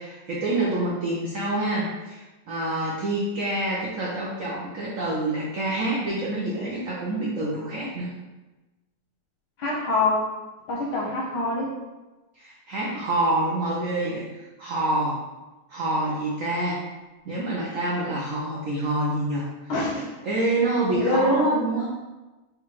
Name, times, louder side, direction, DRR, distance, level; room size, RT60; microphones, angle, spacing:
voice 1, 0.0-8.1 12.4-15.2 15.7-16.8 17.2-19.4 20.2-21.9, right 2 dB, 80° right, -5 dB, 0.7 m, -27 dB
voice 2, 9.6-10.3 10.7-11.7 19.7-20.1 20.9-21.9, left 1 dB, 70° left, -3 dB, 1.1 m, -24 dB
3.6 x 3.2 x 3.0 m, 1.1 s
omnidirectional pair, 2.2 m